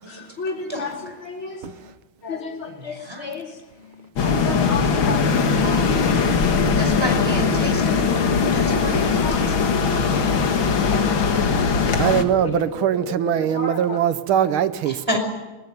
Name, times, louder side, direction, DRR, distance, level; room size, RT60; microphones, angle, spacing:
voice 1, 0.1-1.6 2.2-3.6 3.8-6.3 6.9-7.1 7.8-8.0 8.6-9.4 10.8-11.4 12.3-14.0 14.4-14.5, left 4 dB, 90° left, 4.8 m, -33 dB
voice 2, 2.7-3.3 6.8-9.8 15.1-15.2, equal, 10° right, 5.6 m, -30 dB
sound 1, 4.2-12.2, left 5 dB, 75° left, 2.4 m, -20 dB
voice 3, 12.0-15.2, right 10 dB, 90° right, 1.8 m, -22 dB
21.5 x 20.0 x 9.4 m
omnidirectional pair, 2.2 m